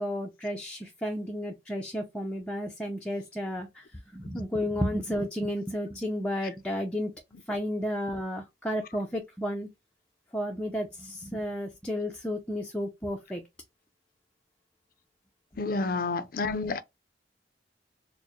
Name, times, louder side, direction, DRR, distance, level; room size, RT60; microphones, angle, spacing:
voice 1, 0.0-3.8 4.1-7.1 7.5-9.7 10.3-13.4, equal, 5° left, 0.5 m, -32 dB
voice 2, 15.6-16.8, left 3 dB, 55° left, 0.5 m, -29 dB
4.4 x 2.1 x 3.0 m
head